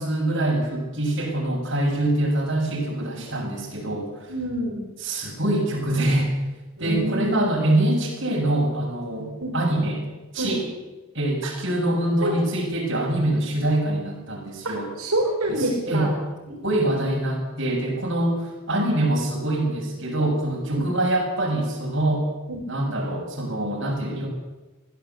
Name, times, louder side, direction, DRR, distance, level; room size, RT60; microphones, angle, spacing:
voice 1, 0.0-4.3 5.0-6.3 6.8-10.1 10.3-10.6 11.1-14.9 15.5-16.1 16.6-22.3 22.7-24.3, right 1 dB, 55° right, -1 dB, 7.1 m, -24 dB
voice 2, 4.3-4.9 6.8-7.5 9.4-9.5 10.4-10.6 11.4-11.5 12.2-12.4 14.6-16.1 16.5-16.8 20.7-20.9 22.5-22.6, right 1 dB, 85° right, -2 dB, 5.1 m, -27 dB
21.0 x 15.5 x 8.3 m, 1.2 s
head